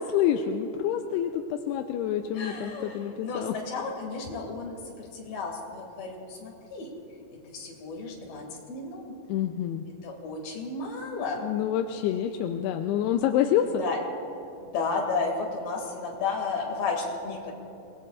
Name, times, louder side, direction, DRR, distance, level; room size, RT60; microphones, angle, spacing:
voice 1, 0.0-3.6 9.3-9.8 11.4-13.7, left 10 dB, 80° left, 5 dB, 2.6 m, -27 dB
voice 2, 2.3-4.7 5.0-6.9 7.5-9.1 10.0-11.4 13.8-14.0 14.6-17.5, left 4 dB, 65° left, 0 dB, 4.0 m, -33 dB
29.0 x 19.5 x 2.5 m, 2.9 s
omnidirectional pair, 4.8 m